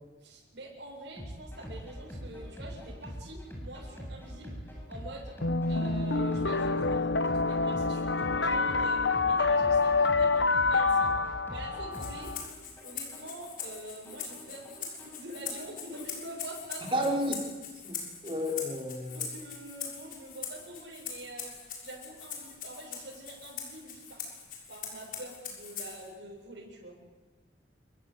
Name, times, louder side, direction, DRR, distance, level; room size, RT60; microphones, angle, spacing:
voice 1, 0.2-5.4 5.7-11.2 11.5-12.3 12.8-17.1 19.1-24.2 24.7-26.9, right 1 dB, 70° right, -3 dB, 7.5 m, -45 dB
sound 1, 1.2-16.2, equal, 10° left, 7.8 m, -44 dB
sound 2, 5.4-12.4, left 3 dB, 80° left, 1.1 m, -27 dB
Rattle (instrument), 11.9-26.1, left 6 dB, 50° left, 6.7 m, -42 dB
voice 2, 16.9-17.4 17.8-19.2, equal, 30° right, -1 dB, 5.3 m, -31 dB
27.5 x 23.5 x 8.3 m, 1.2 s
head